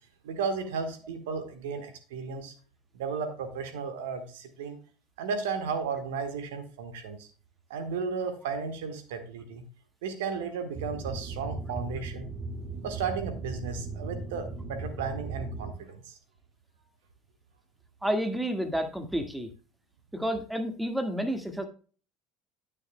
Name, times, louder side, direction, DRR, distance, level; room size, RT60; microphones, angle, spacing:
voice 1, 0.2-2.5 2.9-4.8 5.2-7.3 7.7-9.6 10.0-12.3 12.8-16.2, right 5 dB, 70° right, 8 dB, 1.4 m, -34 dB
sound 1, 10.7-15.7, right 3 dB, 25° right, 2.0 m, -37 dB
voice 2, 18.0-19.5 20.1-21.7, equal, 5° right, 7 dB, 1.7 m, -30 dB
9.8 x 9.5 x 2.2 m, 0.39 s
figure-of-eight pair, 65°, 0 cm